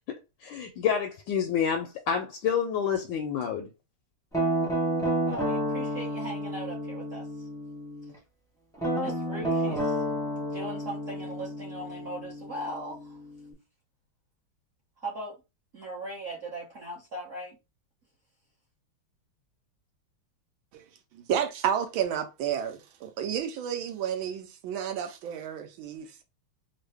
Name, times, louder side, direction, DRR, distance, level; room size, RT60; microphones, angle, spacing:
voice 1, 0.4-3.7, left 7 dB, 75° left, 1.2 m, -28 dB
Guitar, 4.3-8.1 8.8-13.5, equal, 5° left, 0.5 m, -31 dB
voice 2, 5.2-7.5 8.0-8.1 8.8-10.0 10.4-13.2 15.0-15.4 15.7-17.6, right 1 dB, 50° right, 1.1 m, -39 dB
voice 3, 21.1-26.2, right 9 dB, 80° right, 1.4 m, -31 dB
3.6 x 2.1 x 3.4 m
omnidirectional pair, 2.3 m